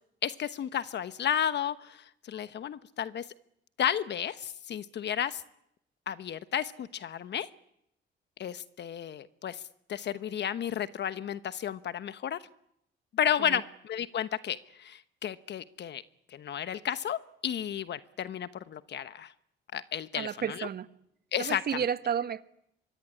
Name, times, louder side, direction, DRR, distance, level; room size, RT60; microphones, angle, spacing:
voice 1, 0.2-3.3 3.8-5.4 6.1-7.5 8.4-9.6 9.9-12.4 13.1-16.0 16.3-19.3 19.7-20.7 21.3-21.6, left 9 dB, 60° left, 1.1 m, -32 dB
voice 2, 20.1-20.9 21.4-22.4, right 8 dB, 50° right, 1.4 m, -32 dB
25.0 x 24.0 x 9.9 m
cardioid pair, 90°, 20 cm